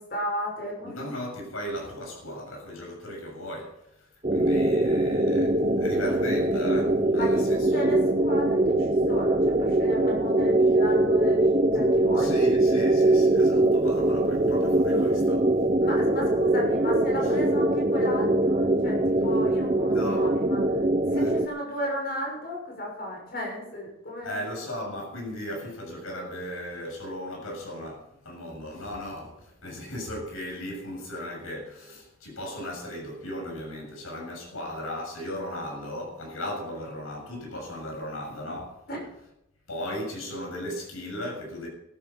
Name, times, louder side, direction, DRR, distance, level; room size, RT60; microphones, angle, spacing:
voice 1, 0.0-1.1 7.1-12.4 15.8-20.8 21.1-24.4 38.9-39.0, equal, 45° left, 6.4 m, -34 dB
voice 2, 0.8-7.9 12.1-15.5 17.2-17.3 19.6-20.3 21.2-21.3 24.2-38.8 39.7-41.7, equal, 90° left, 7.1 m, -36 dB
sound 1, 4.2-21.5, right 1 dB, 30° right, 0.8 m, -22 dB
14.0 x 12.5 x 5.5 m
head